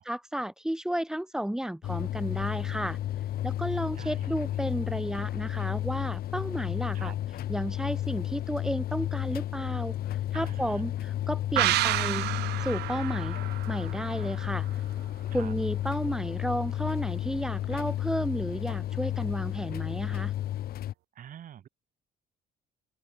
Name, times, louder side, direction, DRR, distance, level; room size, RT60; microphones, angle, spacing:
voice 1, 0.0-3.0 3.4-7.1 7.5-10.0 10.3-12.3 12.6-13.4 13.7-14.7 15.3-20.3, right 1 dB, 5° right, 5.9 m, -32 dB
sound 1, 1.8-20.9, left 12 dB, 65° left, 2.2 m, -32 dB
voice 2, 3.9-4.3 6.9-7.2 10.3-10.8 15.3-15.5 21.1-21.7, right 10 dB, 55° right, 3.4 m, -45 dB
sound 2, 11.6-15.0 15.3-15.4, right 17 dB, 80° right, 1.0 m, -30 dB
open air
cardioid pair, 110°, 17 cm